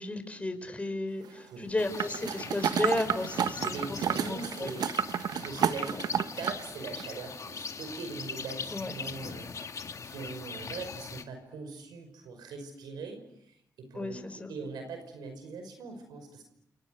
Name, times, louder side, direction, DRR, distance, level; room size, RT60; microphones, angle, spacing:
voice 1, 0.0-4.7 5.9-6.0 8.7-8.9 13.9-14.5, left 2 dB, 20° left, 7 dB, 5.6 m, -34 dB
sound 1, 1.8-11.2, left 5 dB, 50° left, 1.8 m, -41 dB
sound 2, 2.0-6.6 7.0-7.1, right 8 dB, 70° right, 1.0 m, -31 dB
voice 2, 3.5-16.5, right 4 dB, 90° right, 6 dB, 5.5 m, -42 dB
29.0 x 28.0 x 6.6 m, 0.78 s
cardioid pair, 70°, 7 cm